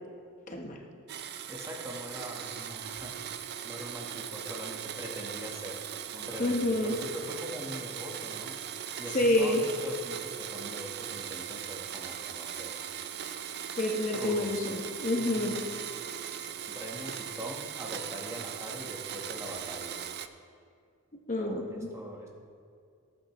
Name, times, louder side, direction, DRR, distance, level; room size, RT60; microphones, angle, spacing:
voice 1, 0.5-0.8 6.4-6.9 9.1-9.6 13.8-15.6 21.3-21.9, left 1 dB, 35° left, 1 dB, 1.0 m, -28 dB
Domestic sounds home sounds, 1.1-20.3, right 9 dB, 45° right, 0.4 m, -39 dB
voice 2, 1.5-3.3 3.6-5.8 6.1-8.6 9.0-12.7 14.1-14.7 15.2-15.6 16.7-20.0 21.4-22.3, equal, 15° right, 0 dB, 1.2 m, -42 dB
18.5 x 8.8 x 3.0 m, 2.3 s
head